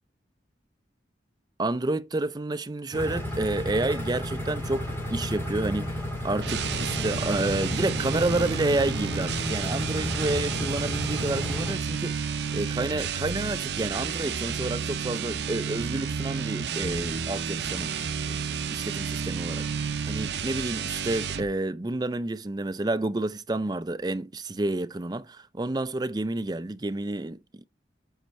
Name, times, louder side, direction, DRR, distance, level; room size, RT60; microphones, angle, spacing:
voice 1, 1.6-17.9 18.3-18.4 18.7-19.7 20.1-27.6, right 2 dB, 20° right, 0.4 m, -30 dB
sound 1, 2.9-11.7, left 1 dB, 15° left, 2.2 m, -32 dB
sound 2, 6.4-21.5, right 6 dB, 70° right, 0.7 m, -31 dB
8.0 x 4.3 x 4.6 m
head